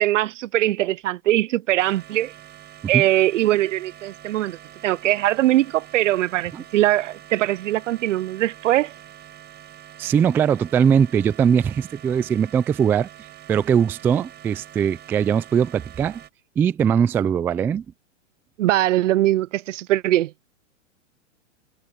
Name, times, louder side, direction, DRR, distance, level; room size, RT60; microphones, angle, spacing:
voice 1, 0.0-2.3 2.9-4.6 4.8-8.9 18.6-20.5, right 15 dB, 70° right, 0.6 m, -21 dB
sound 1, 1.8-16.3, right 11 dB, 25° right, 5.0 m, -45 dB
voice 2, 10.0-13.1 13.5-16.2 16.6-17.8, right 7 dB, 5° right, 0.3 m, -20 dB
hypercardioid pair, 125°, 39 cm